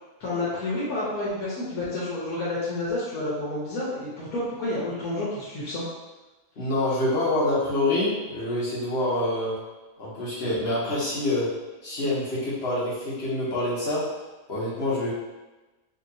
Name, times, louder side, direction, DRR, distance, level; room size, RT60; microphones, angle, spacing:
voice 1, 0.2-5.8, left 2 dB, 80° left, -8 dB, 1.3 m, -29 dB
voice 2, 6.6-9.5 10.0-11.5 11.8-14.0 14.5-15.1, left 1 dB, 50° left, -7 dB, 1.2 m, -26 dB
3.7 x 2.9 x 2.7 m, 1.1 s
omnidirectional pair, 1.5 m